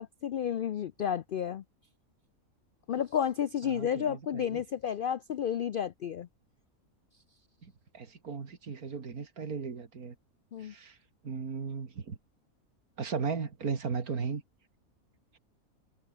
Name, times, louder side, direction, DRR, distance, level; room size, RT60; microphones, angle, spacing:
voice 1, 0.0-1.6 2.9-6.3 10.5-10.7, left 9 dB, 75° left, 0.5 m, -31 dB
voice 2, 3.6-4.6 7.9-10.1 10.6-10.9 11.2-12.2 13.0-14.4, right 5 dB, 90° right, 2.6 m, -36 dB
omnidirectional pair, 1.5 m